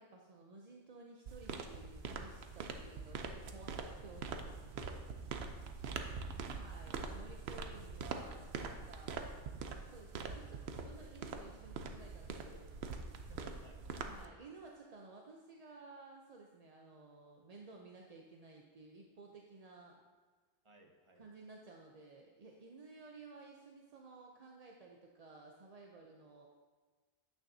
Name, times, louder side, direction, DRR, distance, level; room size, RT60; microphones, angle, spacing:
voice 1, 0.0-4.6 6.5-9.2 9.8-12.7 14.0-20.0 21.2-26.5, right 3 dB, 45° right, 0 dB, 0.6 m, -55 dB
sound 1, 1.3-14.3, right 4 dB, 65° right, 0.9 m, -44 dB
voice 2, 13.3-13.8 20.6-21.3, right 2 dB, 30° right, 2 dB, 0.9 m, -64 dB
9.8 x 8.6 x 2.7 m, 1.4 s
omnidirectional pair, 1.2 m